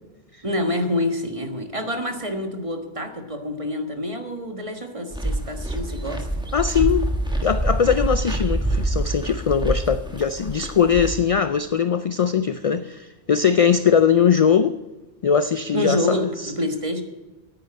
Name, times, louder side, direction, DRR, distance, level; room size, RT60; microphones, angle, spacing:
voice 1, 0.4-6.3 15.7-17.0, left 1 dB, 30° right, 5 dB, 1.4 m, -27 dB
sound 1, 5.1-11.2, right 1 dB, 5° right, 1.2 m, -26 dB
voice 2, 6.5-7.0 7.4-14.8 15.2-16.2, left 7 dB, 60° left, 12 dB, 0.3 m, -20 dB
9.6 x 9.5 x 8.7 m, 1.1 s
omnidirectional pair, 1.1 m